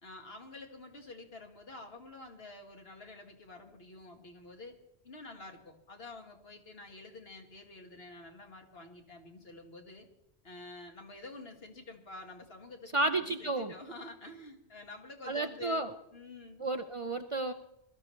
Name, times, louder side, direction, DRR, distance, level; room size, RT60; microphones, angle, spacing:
voice 1, 0.0-4.8 5.0-10.1 10.4-16.6, left 2 dB, 65° left, 3 dB, 1.9 m, -49 dB
voice 2, 12.9-13.7 15.3-15.9 16.6-17.5, right 2 dB, 40° right, 6 dB, 0.5 m, -32 dB
21.5 x 13.0 x 3.2 m, 0.83 s
omnidirectional pair, 1.1 m